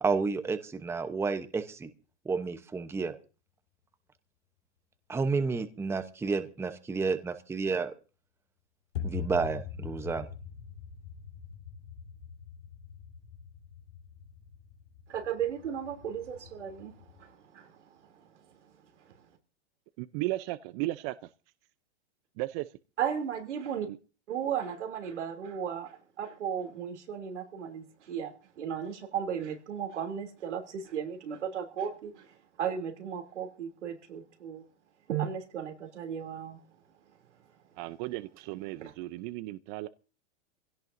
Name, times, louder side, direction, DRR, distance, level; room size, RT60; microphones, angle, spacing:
voice 1, 0.0-1.9 2.2-3.1 5.1-7.9 9.0-10.3, right 4 dB, 5° right, 0.9 m, -31 dB
sound 1, 8.9-17.2, left 8 dB, 75° left, 3.5 m, -43 dB
voice 2, 15.1-17.8 23.0-23.9 24.3-32.3 32.6-34.6 35.1-36.6 38.8-38.9, right 8 dB, 90° right, 3.0 m, -35 dB
voice 3, 20.0-21.3 22.4-22.7 23.9-24.0 37.8-39.9, right 18 dB, 40° right, 0.7 m, -35 dB
23.5 x 16.5 x 2.7 m
hypercardioid pair, 130°, 34 cm